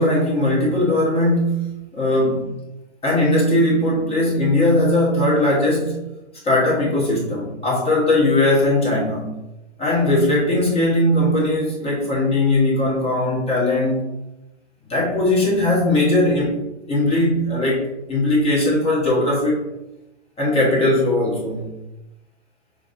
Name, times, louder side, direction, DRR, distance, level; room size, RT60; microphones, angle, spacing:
voice 1, 0.0-2.5 3.0-6.1 6.4-9.3 9.8-14.0 14.9-16.5 16.9-19.6 20.4-21.7, left 1 dB, 15° left, -4 dB, 1.3 m, -19 dB
6.4 x 2.3 x 2.6 m, 0.96 s
hypercardioid pair, 115°, 34 cm